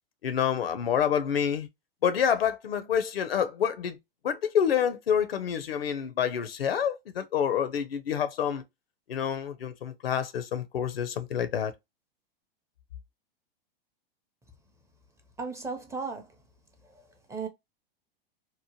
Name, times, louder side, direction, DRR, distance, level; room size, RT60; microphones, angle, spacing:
voice 1, 0.2-1.7 2.0-4.0 4.2-8.6 9.1-11.7, left 8 dB, 80° left, 0.6 m, -27 dB
voice 2, 15.4-16.4 16.8-17.5, right 4 dB, 10° right, 0.5 m, -37 dB
2.9 x 2.1 x 2.8 m
hypercardioid pair, 105°, 29 cm